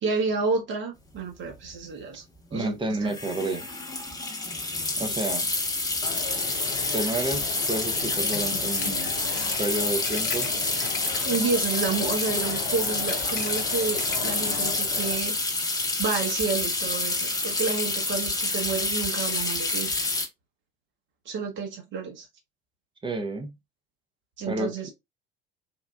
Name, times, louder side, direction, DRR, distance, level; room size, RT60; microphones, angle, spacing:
voice 1, 0.0-2.2 2.5-2.7 3.0-3.1 11.2-15.4 16.0-19.9 21.2-22.3 24.4-24.9, right 4 dB, 40° right, 1.3 m, -30 dB
sound 1, 1.2-1.3 1.4-1.7 3.1-20.3, left 2 dB, 15° left, 0.9 m, -28 dB
voice 2, 2.5-3.7 5.0-5.5 6.9-9.1 9.6-10.5 23.0-23.5 24.5-24.7, right 2 dB, 15° right, 0.8 m, -30 dB
Coin (dropping), 6.0-15.2, left 8 dB, 65° left, 0.5 m, -37 dB
3.6 x 2.3 x 2.3 m
figure-of-eight pair, 65°, 29 cm